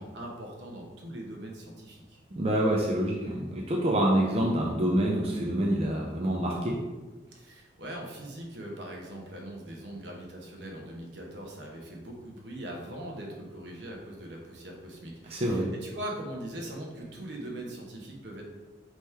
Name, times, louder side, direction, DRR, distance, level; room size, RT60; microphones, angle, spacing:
voice 1, 0.0-2.2 7.3-18.4, right 1 dB, 70° right, 0 dB, 0.9 m, -41 dB
voice 2, 2.4-6.8 15.3-15.7, right 1 dB, 30° right, -2 dB, 0.4 m, -26 dB
3.5 x 3.0 x 4.3 m, 1.3 s
head